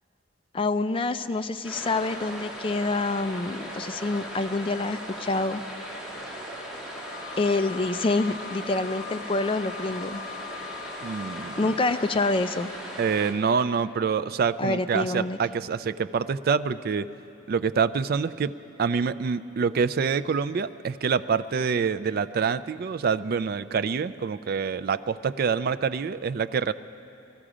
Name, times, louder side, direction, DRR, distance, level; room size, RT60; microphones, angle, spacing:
voice 1, 0.5-5.6 7.4-10.2 11.6-12.7 14.6-15.4, left 2 dB, 25° left, 9 dB, 0.4 m, -27 dB
sound 1, 1.6-13.3, equal, 5° right, 1.9 m, -38 dB
Wind instrument woodwind instrument, 7.1-11.8, left 10 dB, 45° left, 0.9 m, -42 dB
voice 2, 11.0-11.8 13.0-17.1 17.5-26.7, right 6 dB, 50° right, 14 dB, 0.3 m, -26 dB
20.0 x 13.5 x 5.0 m, 2.6 s
head